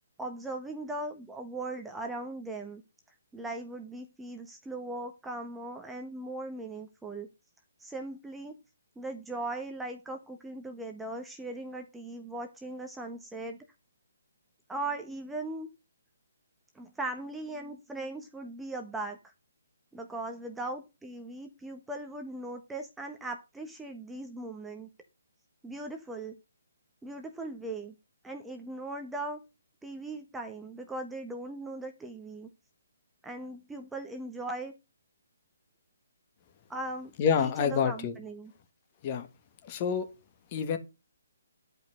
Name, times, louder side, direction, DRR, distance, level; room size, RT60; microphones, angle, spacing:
voice 1, 0.2-2.8 3.3-7.3 7.8-8.5 9.0-13.6 14.7-15.7 16.7-19.3 19.9-24.9 25.6-26.4 27.0-27.9 28.2-29.4 29.8-32.5 33.2-34.7 36.7-38.5, right 2 dB, 5° right, 1.1 m, -39 dB
voice 2, 37.2-38.2 39.0-39.3 39.6-40.1 40.5-40.8, left 7 dB, 35° left, 1.8 m, -27 dB
11.0 x 5.3 x 6.3 m
figure-of-eight pair, 145°, 0 cm